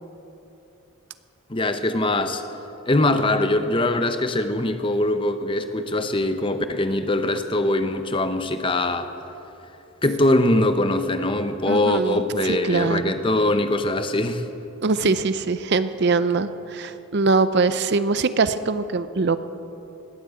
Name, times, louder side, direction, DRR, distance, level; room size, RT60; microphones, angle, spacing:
voice 1, 1.5-2.4 2.9-9.1 10.0-14.4, left 1 dB, 25° left, 9 dB, 0.7 m, -22 dB
voice 2, 11.7-13.1 14.8-19.4, right 4 dB, 50° right, 13 dB, 0.5 m, -22 dB
20.0 x 8.5 x 8.3 m, 2.9 s
head